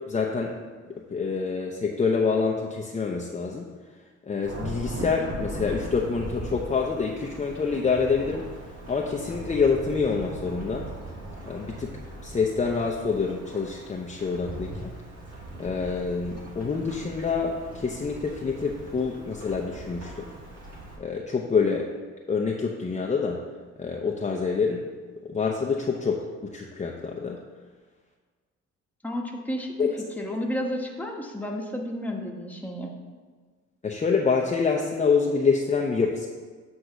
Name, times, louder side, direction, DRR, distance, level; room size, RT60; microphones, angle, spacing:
voice 1, 0.1-0.6 0.9-3.7 4.3-8.5 8.9-10.9 11.4-11.9 12.2-14.9 15.6-20.3 21.0-21.9 22.3-23.4 23.8-24.8 25.2-27.4 29.8-29.9 33.8-36.3, left 5 dB, 25° left, 0 dB, 0.7 m, -26 dB
Thunderstorm / Rain, 4.4-21.0, right 2 dB, 55° right, 2.2 m, -39 dB
voice 2, 29.0-29.9 30.2-32.9, equal, 5° left, 0 dB, 1.2 m, -32 dB
7.9 x 3.5 x 6.4 m, 1.5 s
cardioid pair, 90°, 30 cm